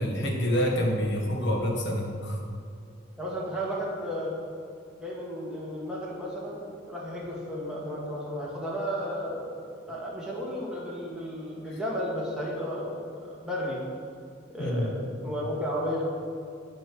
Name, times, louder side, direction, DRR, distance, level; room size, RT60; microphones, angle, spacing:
voice 1, 0.0-2.4 14.6-14.9, equal, 60° left, 0 dB, 1.5 m, -27 dB
voice 2, 3.2-4.3 5.0-9.6 9.9-13.8 14.5-16.0, equal, 5° right, -5 dB, 2.0 m, -33 dB
9.6 x 7.6 x 6.2 m, 2.4 s
head